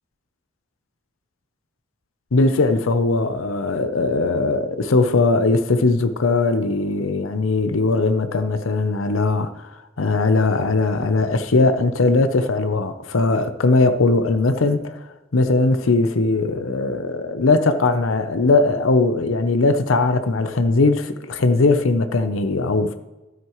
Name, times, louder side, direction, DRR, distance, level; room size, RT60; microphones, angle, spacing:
voice 1, 2.3-15.0 15.3-23.0, left 3 dB, 85° left, 0.7 m, -19 dB
13.0 x 9.3 x 3.1 m
head